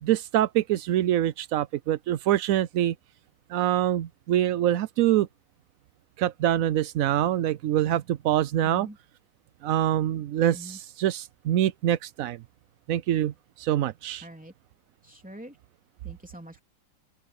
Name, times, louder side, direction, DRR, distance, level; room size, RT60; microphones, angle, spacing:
voice 1, 0.0-2.9 3.5-5.3 6.2-8.9 9.6-12.4 12.9-14.3, right 12 dB, 90° right, 0.7 m, -25 dB
voice 2, 8.6-8.9 10.5-10.8 14.2-14.5 15.1-15.5 16.0-16.6, right 1 dB, 5° right, 3.4 m, -44 dB
open air
omnidirectional pair, 2.1 m